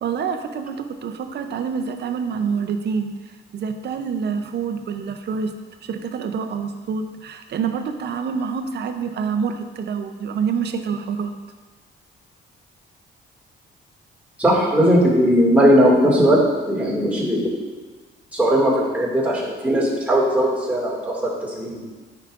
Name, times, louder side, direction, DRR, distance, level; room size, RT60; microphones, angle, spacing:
voice 1, 0.0-3.1 3.5-5.5 5.8-11.3, right 6 dB, 60° right, 8 dB, 0.6 m, -26 dB
voice 2, 14.4-16.4 16.7-17.5 18.3-21.8, equal, 5° right, -5 dB, 2.1 m, -18 dB
9.7 x 4.8 x 2.5 m, 1.3 s
cardioid pair, 90°, 20 cm